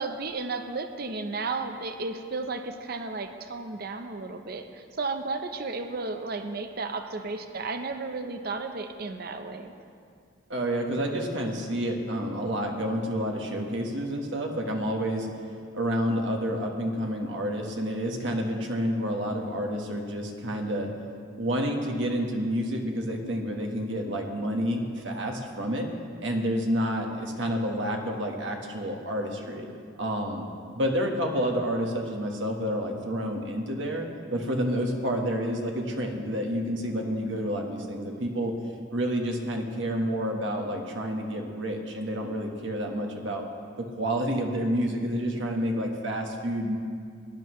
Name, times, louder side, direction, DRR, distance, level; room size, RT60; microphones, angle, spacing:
voice 1, 0.0-9.7, right 3 dB, 50° right, 7 dB, 0.7 m, -33 dB
voice 2, 10.5-15.3 15.7-20.9 21.4-25.9 26.2-29.7 30.0-30.5 30.7-38.5 38.9-43.4 44.0-46.8, equal, 70° right, 2 dB, 1.4 m, -29 dB
18.5 x 11.0 x 3.2 m, 2.2 s
head